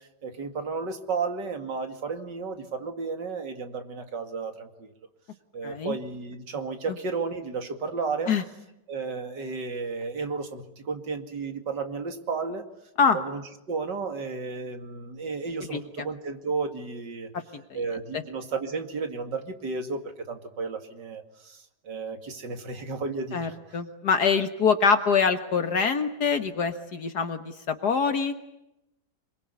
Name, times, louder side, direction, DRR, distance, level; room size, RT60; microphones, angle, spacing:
voice 1, 0.0-4.9 5.5-8.3 8.9-12.7 13.1-13.4 13.7-17.3 17.7-23.8, right 4 dB, 85° right, 7 dB, 3.0 m, -33 dB
voice 2, 5.6-5.9 8.3-8.4 13.0-13.2 15.7-15.8 17.5-17.6 18.1-18.2 23.3-28.3, left 5 dB, 65° left, 8 dB, 2.0 m, -24 dB
26.0 x 22.5 x 9.6 m, 0.89 s
omnidirectional pair, 1.8 m